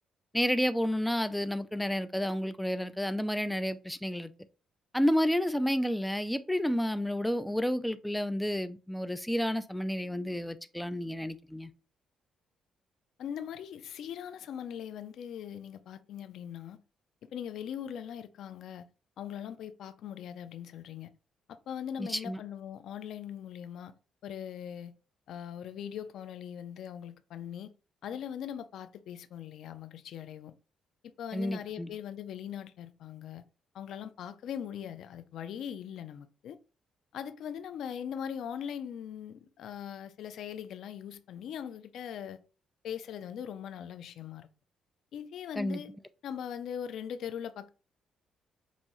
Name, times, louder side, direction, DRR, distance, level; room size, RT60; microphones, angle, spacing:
voice 1, 0.3-4.3 4.9-11.7 22.0-22.4 31.3-31.9 45.6-45.8, equal, 5° left, 0.4 m, -30 dB
voice 2, 13.2-16.8 17.3-18.9 19.2-21.1 21.5-23.9 24.2-24.9 25.3-27.7 28.0-30.5 31.0-33.5 33.7-36.6 37.1-42.4 42.8-44.5 45.1-45.9 46.2-47.7, left 9 dB, 75° left, 0.4 m, -40 dB
5.4 x 2.5 x 3.0 m
cardioid pair, 90°, 0 cm